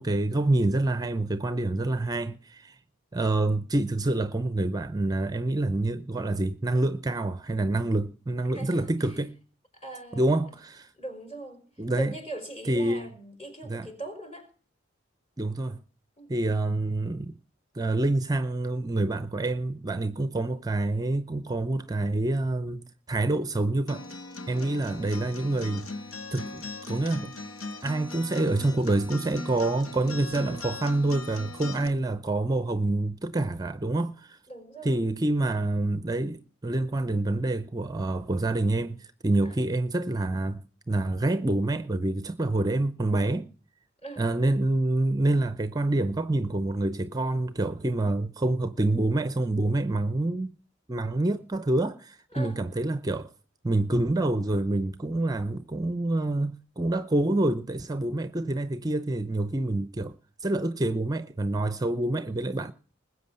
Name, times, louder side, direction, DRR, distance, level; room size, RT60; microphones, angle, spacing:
voice 1, 0.0-2.8 3.1-9.3 10.1-10.9 11.8-12.1 12.7-13.1 13.6-13.9 15.4-15.8 16.3-17.4 17.7-24.0 24.5-25.9 26.3-27.3 27.8-34.4 34.8-43.5 44.2-50.5 50.9-53.3 53.6-60.1 60.4-62.7, right 2 dB, 20° right, 0.6 m, -27 dB
voice 2, 8.5-9.2 9.7-10.5 11.0-11.6 11.9-14.5 16.2-16.3 24.5-24.8 34.5-35.0 39.4-39.6 44.0-44.3 52.3-52.6, right 2 dB, 30° left, 5.2 m, -41 dB
Acoustic guitar, 23.9-31.9, left 2 dB, 85° left, 1.7 m, -39 dB
20.5 x 8.1 x 5.5 m
head